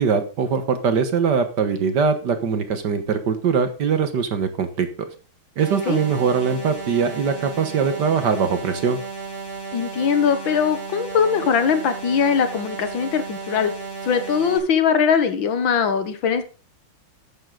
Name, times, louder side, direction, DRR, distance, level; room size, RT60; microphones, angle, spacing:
voice 1, 0.0-4.9 5.6-9.0, right 6 dB, 60° right, 9 dB, 1.7 m, -22 dB
sound 1, 5.6-14.6, right 4 dB, 25° right, 6.6 m, -34 dB
voice 2, 9.7-13.7 14.0-16.4, left 7 dB, 70° left, 9 dB, 2.0 m, -21 dB
13.0 x 9.4 x 3.9 m, 0.34 s
omnidirectional pair, 2.3 m